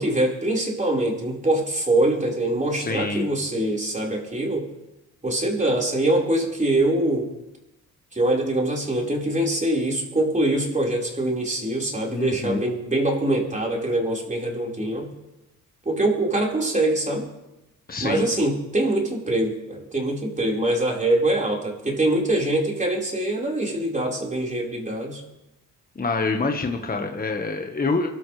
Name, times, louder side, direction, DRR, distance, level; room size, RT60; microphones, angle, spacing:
voice 1, 0.0-4.7 5.2-7.3 8.1-15.1 15.8-17.3 18.0-25.2, right 1 dB, 20° right, -2 dB, 4.7 m, -23 dB
voice 2, 2.8-3.3 12.1-12.6 17.9-18.2 25.9-28.1, left 3 dB, 25° left, 3 dB, 1.4 m, -26 dB
24.5 x 13.0 x 3.4 m, 0.95 s
cardioid pair, 75°, 33 cm